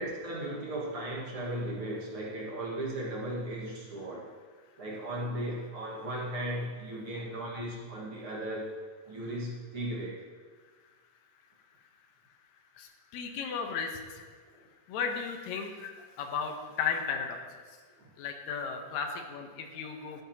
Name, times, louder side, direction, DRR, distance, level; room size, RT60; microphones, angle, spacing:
voice 1, 0.0-4.3 4.8-8.7 9.1-10.1 18.0-18.1 19.0-19.1 20.1-20.2, right 1 dB, 50° right, -4 dB, 2.5 m, -36 dB
voice 2, 12.8-14.3 14.9-15.9 16.2-17.4 18.2-20.2, left 6 dB, 75° left, 3 dB, 2.4 m, -35 dB
13.0 x 13.0 x 3.0 m, 1.5 s
omnidirectional pair, 3.4 m